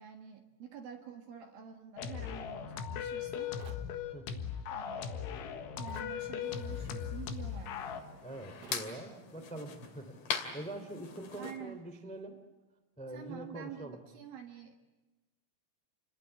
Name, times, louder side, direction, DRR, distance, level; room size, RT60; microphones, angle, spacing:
voice 1, 0.0-3.6 4.7-8.0 11.4-11.8 13.1-14.8, right 8 dB, 60° right, 4 dB, 2.6 m, -48 dB
sound 1, 2.0-8.0, left 8 dB, 70° left, 3.8 m, -38 dB
sound 2, 3.6-3.9 5.9-6.2 8.6-8.9, right 12 dB, 90° right, 2.2 m, -53 dB
voice 2, 4.1-4.5 8.2-12.4 13.0-14.0, right 1 dB, 5° left, 7 dB, 0.7 m, -44 dB
sound 3, 6.4-11.6, left 6 dB, 55° left, 4.1 m, -42 dB
29.0 x 21.5 x 8.1 m, 1.2 s
omnidirectional pair, 5.9 m